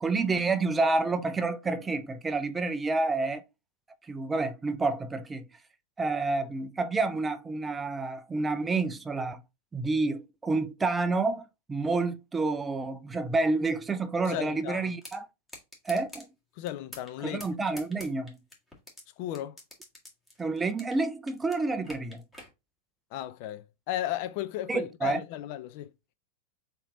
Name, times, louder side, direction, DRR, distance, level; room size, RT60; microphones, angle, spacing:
voice 1, 0.0-3.4 4.1-5.5 6.0-9.4 9.7-15.3 15.9-16.3 17.2-18.4 20.4-22.2 24.7-25.2, right 3 dB, 15° right, 0.6 m, -29 dB
voice 2, 14.2-14.9 16.6-17.4 19.2-19.6 23.1-25.9, left 13 dB, 55° left, 0.5 m, -35 dB
sound 1, 15.0-15.2 15.5-16.3 16.7-17.1 17.4-19.0 19.3-21.0 21.3-22.5, left 1 dB, 10° left, 1.8 m, -45 dB
4.2 x 3.4 x 3.6 m
hypercardioid pair, 115°, 0 cm